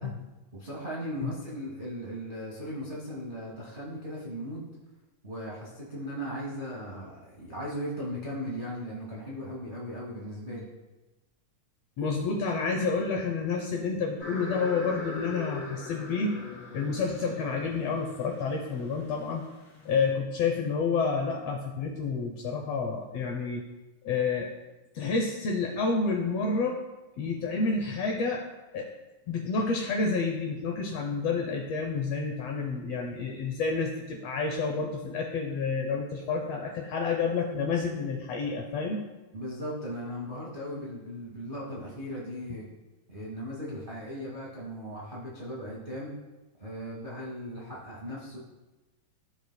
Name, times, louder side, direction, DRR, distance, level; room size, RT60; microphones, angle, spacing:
voice 1, 0.5-4.7 5.2-10.7 39.3-42.7 43.1-46.2 46.6-48.4, equal, 50° right, -5 dB, 0.6 m, -37 dB
voice 2, 12.0-16.3 16.7-19.4 19.8-23.6 24.0-24.5 24.9-26.8 27.2-28.4 28.7-28.9 29.3-39.0, left 4 dB, 75° left, 1 dB, 1.5 m, -29 dB
sound 1, 14.2-20.0, left 3 dB, 60° left, 3.1 m, -42 dB
14.0 x 4.8 x 2.2 m, 1.1 s
omnidirectional pair, 3.5 m